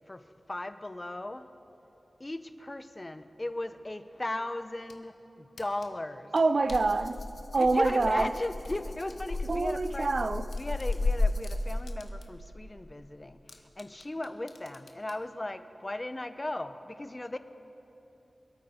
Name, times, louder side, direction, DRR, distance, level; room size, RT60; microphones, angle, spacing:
voice 1, 0.1-1.5 2.2-6.3 7.6-10.1 10.6-17.4, left 1 dB, 30° left, 0.7 m, -37 dB
sound 1, 4.6-5.0 5.6-7.0 7.6-9.2 9.6-9.7 10.1-10.2 10.5-12.5 12.8-12.9 13.5-15.2, left 4 dB, 85° left, 1.0 m, -54 dB
voice 2, 6.3-7.2 7.5-8.3 9.5-10.5, right 3 dB, 60° right, 0.4 m, -26 dB
Rattle (instrument), 6.7-12.0, left 2 dB, 60° left, 0.8 m, -33 dB
26.5 x 9.2 x 4.2 m
wide cardioid pair, 70°, 0 cm